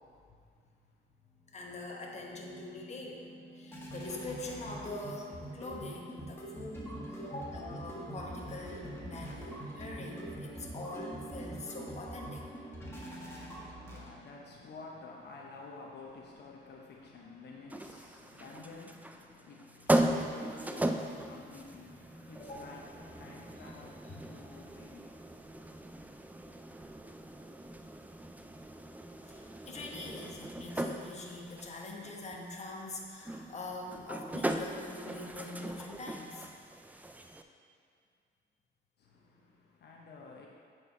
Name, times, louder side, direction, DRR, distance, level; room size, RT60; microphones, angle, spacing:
voice 1, 0.3-0.7 13.0-26.0 39.0-40.5, left 3 dB, 60° left, -2 dB, 0.9 m, -51 dB
voice 2, 1.5-3.3 3.5-12.4 22.4-22.6 24.1-24.2 29.2-36.5, left 2 dB, 35° left, -1 dB, 1.1 m, -44 dB
sound 1, 1.6-14.4, right 1 dB, 10° left, 1.7 m, -44 dB
sound 2, 17.7-37.4, right 1 dB, 10° right, 0.4 m, -38 dB
8.1 x 4.7 x 4.5 m, 2.1 s
cardioid pair, 90°, 20 cm